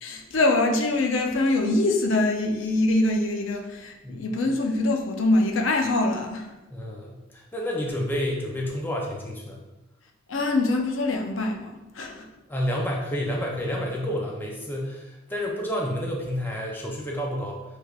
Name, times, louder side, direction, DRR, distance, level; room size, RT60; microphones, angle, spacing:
voice 1, 0.0-6.5 10.3-12.2, left 2 dB, 75° left, 3 dB, 0.6 m, -24 dB
voice 2, 6.7-9.6 12.5-17.6, equal, 10° left, -1 dB, 0.5 m, -30 dB
6.2 x 3.3 x 2.4 m, 1.0 s
head